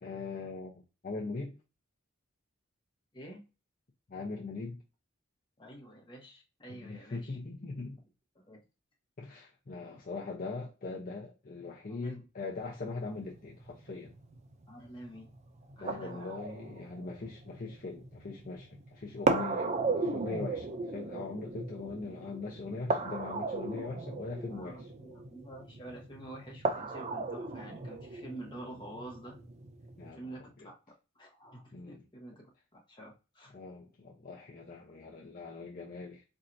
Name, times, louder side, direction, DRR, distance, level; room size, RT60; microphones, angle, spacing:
voice 1, 0.0-0.7 1.0-1.5 4.1-4.8 6.7-8.0 9.2-14.1 15.8-24.9 30.0-30.7 31.7-32.0 33.5-36.2, left 3 dB, 45° left, 0.7 m, -41 dB
voice 2, 5.6-7.4 8.3-8.6 11.9-12.2 14.7-15.3 15.8-16.4 20.6-20.8 24.5-29.4 30.1-30.8 31.1-33.6, right 1 dB, 25° left, 1.2 m, -48 dB
sound 1, 12.5-30.1, right 3 dB, 35° right, 0.4 m, -37 dB
4.5 x 2.6 x 2.6 m
head